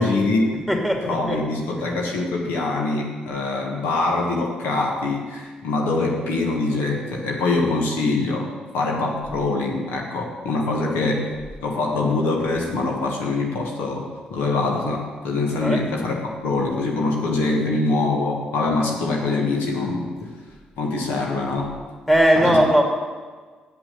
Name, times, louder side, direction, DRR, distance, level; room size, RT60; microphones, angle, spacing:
voice 1, 0.0-0.7 1.0-11.3 11.6-20.3 20.8-21.7 22.4-22.6, left 3 dB, 75° left, -1 dB, 1.4 m, -24 dB
voice 2, 0.5-1.4 15.6-15.8 22.1-22.8, equal, 10° left, 1 dB, 2.6 m, -19 dB
8.4 x 6.0 x 8.2 m, 1.4 s
hypercardioid pair, 45°, 4 cm